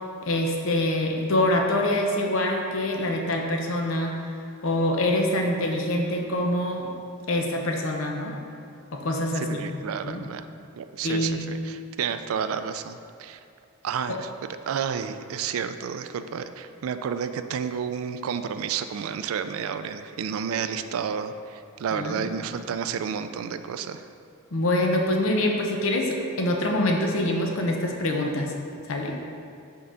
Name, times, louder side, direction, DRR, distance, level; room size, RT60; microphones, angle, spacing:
voice 1, 0.2-4.1 4.6-6.9 7.3-8.3 8.9-9.7 10.0-10.2 11.0-11.4 14.1-14.2 21.9-22.3 24.5-28.5 28.9-29.2, left 1 dB, 70° left, 1 dB, 0.8 m, -25 dB
voice 2, 9.4-10.5 10.8-13.4 13.8-14.3 14.7-24.0, right 7 dB, 75° right, 10 dB, 0.3 m, -31 dB
5.7 x 3.8 x 5.5 m, 2.5 s
head